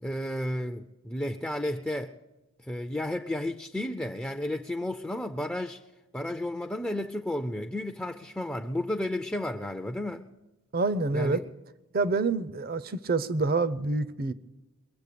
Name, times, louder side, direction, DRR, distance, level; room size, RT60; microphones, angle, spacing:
voice 1, 0.0-2.1 2.6-5.8 6.1-10.3 11.1-11.4, left 1 dB, 5° left, 0.4 m, -32 dB
voice 2, 10.7-11.4 11.9-14.3, right 3 dB, 45° right, 0.6 m, -27 dB
22.5 x 7.8 x 6.7 m
head